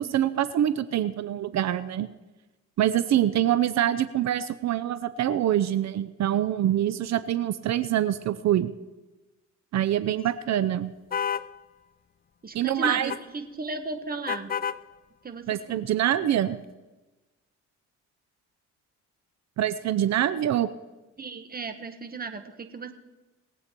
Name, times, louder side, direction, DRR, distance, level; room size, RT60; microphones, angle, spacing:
voice 1, 0.0-2.1 2.8-8.7 9.7-10.9 12.5-13.1 15.5-16.6 19.6-20.7, right 11 dB, 65° right, 14 dB, 0.7 m, -25 dB
sound 1, 11.1-11.5 12.8-13.2 14.3-14.8, left 7 dB, 30° left, 0.5 m, -29 dB
voice 2, 12.4-14.5 15.2-15.9 21.2-22.9, right 3 dB, 30° right, 8 dB, 1.5 m, -35 dB
20.5 x 8.3 x 4.5 m, 1.1 s
cardioid pair, 90°, 30 cm